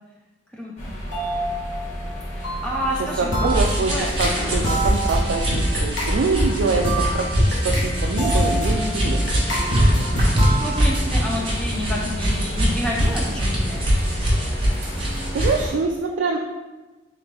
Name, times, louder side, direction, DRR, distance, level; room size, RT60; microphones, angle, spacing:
voice 1, 0.5-1.0 2.3-3.6 3.9-4.1 10.6-13.9, equal, 5° left, -3 dB, 0.5 m, -29 dB
sound 1, 0.8-15.7, equal, 35° left, 1.2 m, -32 dB
sound 2, 1.1-2.1 2.4-10.9, right 1 dB, 75° left, 1.1 m, -27 dB
voice 2, 3.0-9.5 15.0-16.4, right 4 dB, 70° right, 1 dB, 0.3 m, -25 dB
sound 3, 3.5-15.7, equal, 30° right, 1.0 m, -23 dB
3.7 x 3.4 x 3.2 m, 1.2 s
head